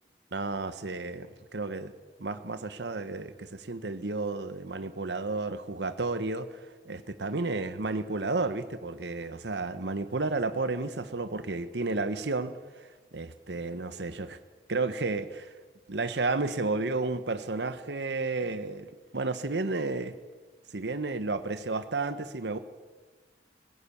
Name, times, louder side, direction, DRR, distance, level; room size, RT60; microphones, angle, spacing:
voice 1, 0.3-1.9 2.2-6.6 6.8-12.6 13.1-14.4 14.7-15.5 15.9-18.9 19.1-20.2 20.7-22.6, right 3 dB, 80° right, 11 dB, 1.1 m, -32 dB
20.0 x 16.0 x 8.5 m, 1.3 s
head